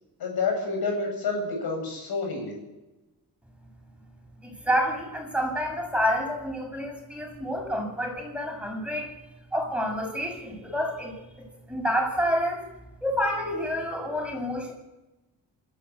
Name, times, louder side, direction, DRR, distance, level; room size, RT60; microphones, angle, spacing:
voice 1, 0.2-2.6, left 4 dB, 70° left, 3 dB, 7.9 m, -29 dB
voice 2, 4.4-9.1 9.5-12.7 13.0-14.7, equal, 5° right, 1 dB, 7.7 m, -28 dB
27.0 x 13.5 x 8.6 m, 1.0 s
cardioid pair, 95°, 39 cm